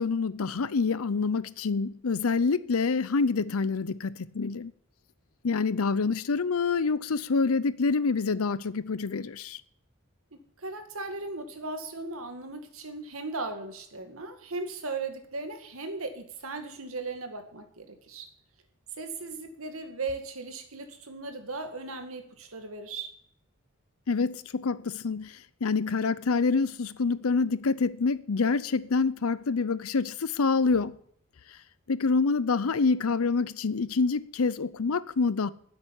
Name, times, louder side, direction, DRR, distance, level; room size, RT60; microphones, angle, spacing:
voice 1, 0.0-4.7 5.4-9.6 24.1-31.0 31.9-35.5, left 4 dB, 80° left, 0.6 m, -27 dB
voice 2, 10.3-18.3 19.0-23.1, right 3 dB, 75° right, 2.0 m, -37 dB
10.0 x 8.1 x 9.9 m
head